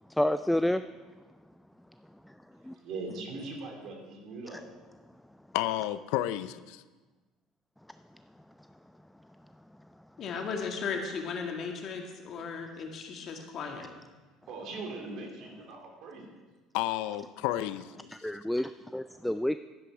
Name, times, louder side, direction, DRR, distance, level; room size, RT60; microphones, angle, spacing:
voice 1, 0.2-0.8 2.3-2.4 2.6-2.7 4.5-4.6 18.1-19.6, left 1 dB, 5° left, 0.3 m, -29 dB
voice 2, 2.8-4.6 14.5-16.2, right 3 dB, 60° right, 2.9 m, -40 dB
voice 3, 5.5-6.8 16.7-18.1, left 14 dB, 75° left, 0.4 m, -31 dB
voice 4, 10.2-13.9, left 5 dB, 50° left, 2.0 m, -36 dB
11.5 x 9.9 x 4.8 m
supercardioid pair, 85°, 0 cm